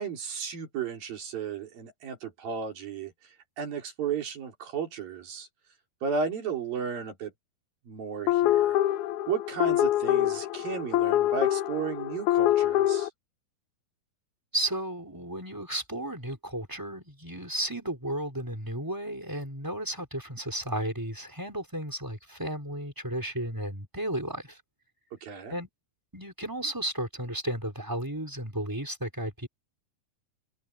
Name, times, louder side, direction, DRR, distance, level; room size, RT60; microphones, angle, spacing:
voice 1, 0.0-3.1 3.6-5.5 6.0-7.3 7.9-8.8 9.3-13.1 25.2-25.6, right 6 dB, 80° right, 5.9 m, -34 dB
sound 1, 8.3-13.1, left 13 dB, 80° left, 1.8 m, -25 dB
voice 2, 14.5-24.6 25.5-25.7 26.1-29.5, right 1 dB, 5° right, 4.0 m, -33 dB
open air
omnidirectional pair, 4.0 m